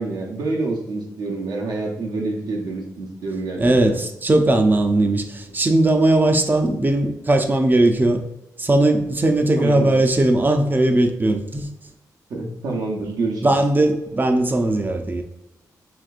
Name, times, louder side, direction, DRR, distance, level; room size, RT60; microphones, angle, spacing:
voice 1, 0.0-4.0 9.6-10.0 12.3-13.5, right 3 dB, 80° right, 0 dB, 0.9 m, -27 dB
voice 2, 3.6-8.2 8.6-11.7 13.4-15.2, right 1 dB, 30° right, 5 dB, 0.6 m, -18 dB
5.0 x 3.4 x 2.5 m, 0.91 s
cardioid pair, 65°, 7 cm